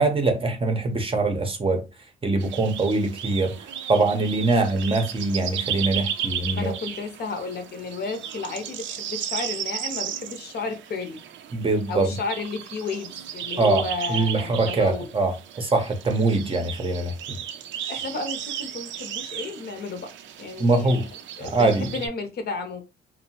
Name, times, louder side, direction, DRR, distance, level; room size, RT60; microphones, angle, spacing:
voice 1, 0.0-1.8 2.2-3.6 3.9-6.7 11.5-12.1 13.6-17.4 20.6-21.1 21.4-21.9, right 3 dB, 30° right, 0.6 m, -23 dB
sound 1, 2.4-22.1, right 9 dB, 70° right, 0.4 m, -35 dB
voice 2, 6.5-11.2 11.9-15.1 17.9-20.1 20.4-21.0 21.4-22.8, left 4 dB, 55° left, 0.7 m, -32 dB
2.7 x 2.0 x 2.8 m
cardioid pair, 90°, 20 cm